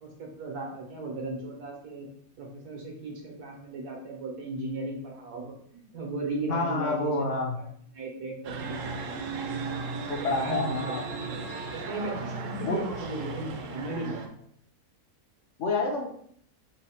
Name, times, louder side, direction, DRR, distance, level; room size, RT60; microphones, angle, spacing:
voice 1, 0.0-2.1 2.4-7.7 7.9-9.2 10.2-11.0 11.7-14.5, right 2 dB, 90° right, 0 dB, 1.5 m, -36 dB
voice 2, 6.5-7.6 10.1-11.0 12.7-12.8 15.6-16.1, left 3 dB, 65° left, 0 dB, 0.8 m, -28 dB
sound 1, 8.4-14.3, right 4 dB, 70° right, 0.8 m, -36 dB
4.0 x 2.1 x 4.2 m, 0.63 s
omnidirectional pair, 1.6 m